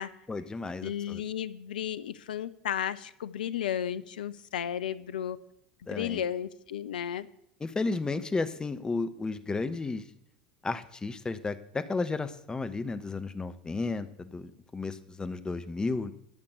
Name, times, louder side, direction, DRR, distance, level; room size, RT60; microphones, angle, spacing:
voice 1, 0.3-1.2 5.9-6.2 7.6-10.0 10.6-16.1, left 3 dB, 15° left, 11 dB, 1.1 m, -33 dB
voice 2, 0.8-5.4 5.9-7.3, left 9 dB, 75° left, 15 dB, 0.6 m, -33 dB
12.5 x 5.9 x 8.1 m, 0.79 s
hypercardioid pair, 80°, 5 cm